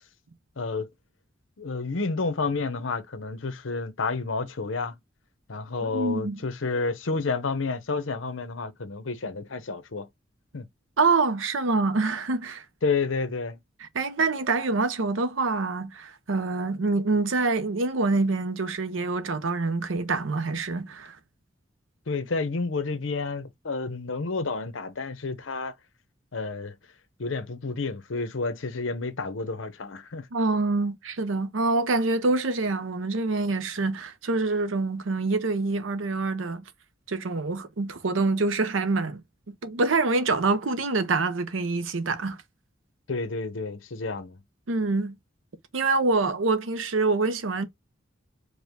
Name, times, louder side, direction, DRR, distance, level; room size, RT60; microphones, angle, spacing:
voice 1, 0.6-0.9 1.6-4.9 5.5-10.1 10.5-10.7 12.8-13.6 22.1-25.7 26.3-26.7 27.2-30.3 43.1-44.4, left 4 dB, 85° left, 0.8 m, -30 dB
voice 2, 5.8-6.4 11.0-12.6 13.8-21.2 30.3-36.6 37.1-39.2 39.5-42.4 44.7-45.1 45.7-47.7, right 3 dB, 90° right, 0.7 m, -26 dB
4.8 x 2.2 x 3.5 m
head